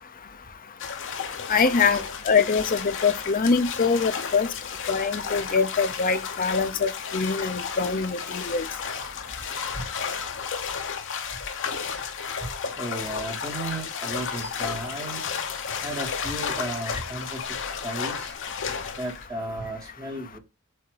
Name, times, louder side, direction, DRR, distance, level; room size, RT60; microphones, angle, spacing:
sound 1, 0.8-19.3, left 6 dB, 60° left, 1.1 m, -33 dB
voice 1, 1.5-4.5 4.9-8.7, left 5 dB, 40° left, 0.7 m, -24 dB
voice 2, 12.8-15.2 15.8-17.6 17.8-18.3 19.0-20.4, right 1 dB, 20° right, 1.5 m, -34 dB
7.9 x 2.8 x 4.7 m
head